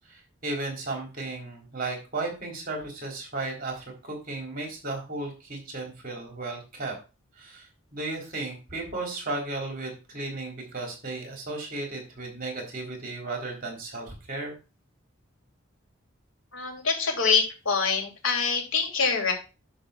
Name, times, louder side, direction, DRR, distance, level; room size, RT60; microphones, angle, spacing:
voice 1, 0.1-6.9 7.4-14.5, right 2 dB, 45° right, 1 dB, 3.5 m, -35 dB
voice 2, 16.5-19.3, left 5 dB, 80° left, 1 dB, 2.8 m, -25 dB
9.9 x 3.4 x 6.9 m, 0.31 s
head